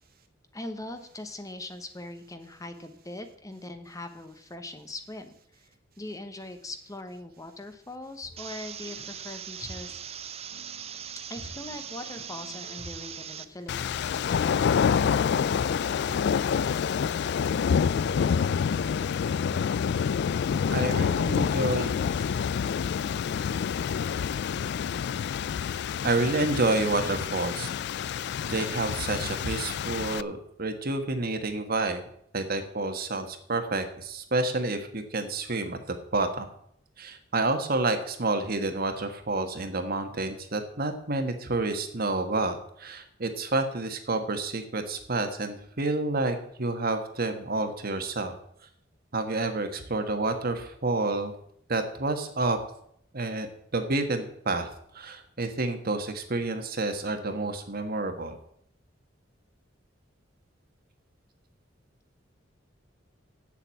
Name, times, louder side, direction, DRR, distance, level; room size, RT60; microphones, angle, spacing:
voice 1, 0.5-5.3 6.0-10.0 11.3-14.2, left 2 dB, 20° left, 8 dB, 0.9 m, -41 dB
sound 1, 8.2-19.7, left 1 dB, 90° left, 2.4 m, -50 dB
sound 2, 8.4-13.4, right 8 dB, 35° right, 0.6 m, -40 dB
sound 3, 13.7-30.2, left 7 dB, 65° left, 0.3 m, -27 dB
voice 2, 20.7-21.9 25.7-25.8 26.0-27.7 28.4-32.0 32.3-36.5 37.0-48.3 49.1-51.3 51.7-52.6 53.1-53.5 53.7-58.4, right 2 dB, 55° right, 7 dB, 1.4 m, -29 dB
8.2 x 7.3 x 8.3 m, 0.69 s
head